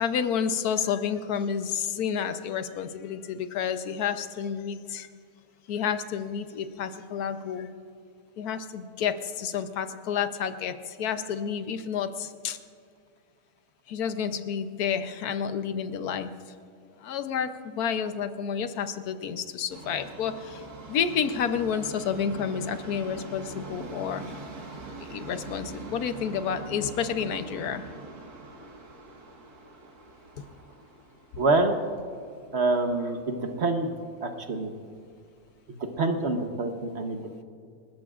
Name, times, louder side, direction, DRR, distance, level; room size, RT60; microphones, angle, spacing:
voice 1, 0.0-5.1 5.7-7.7 8.4-12.6 13.9-16.3 17.0-24.3 25.0-27.8 30.4-30.5 31.3-31.4 32.3-32.4, left 7 dB, 85° left, 10 dB, 1.3 m, -30 dB
Subway metro underground, 19.7-33.8 34.1-34.2 35.1-35.2 35.4-35.5 36.2-36.3, right 3 dB, 85° right, 2.2 m, -43 dB
voice 2, 31.4-31.8 32.5-33.9 34.2-34.7 35.7-37.4, right 3 dB, 50° right, 5 dB, 1.2 m, -26 dB
28.5 x 14.0 x 2.5 m, 2.3 s
omnidirectional pair, 1.6 m